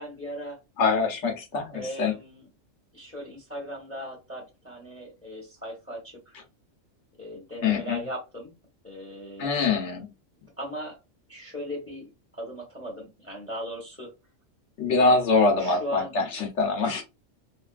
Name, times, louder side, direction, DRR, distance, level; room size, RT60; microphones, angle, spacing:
voice 1, 0.0-0.6 1.7-2.5 2.9-6.4 7.2-8.5 8.8-9.5 10.6-11.0 11.3-14.1 15.6-16.1 16.8-17.0, equal, 10° left, -1 dB, 0.9 m, -38 dB
voice 2, 0.8-2.1 7.6-8.0 9.4-10.1 14.8-17.0, left 3 dB, 65° left, 2 dB, 1.1 m, -24 dB
2.7 x 2.5 x 2.3 m, 0.25 s
omnidirectional pair, 1.3 m